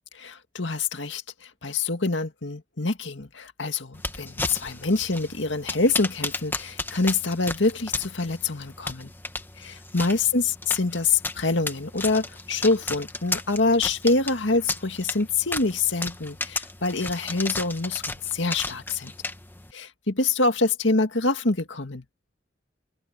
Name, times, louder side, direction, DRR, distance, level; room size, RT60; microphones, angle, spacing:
voice 1, 0.2-9.1 9.6-19.1 19.7-22.0, left 3 dB, 85° left, 2.1 m, -25 dB
sound 1, 3.9-19.7, left 2 dB, 10° left, 1.3 m, -34 dB
head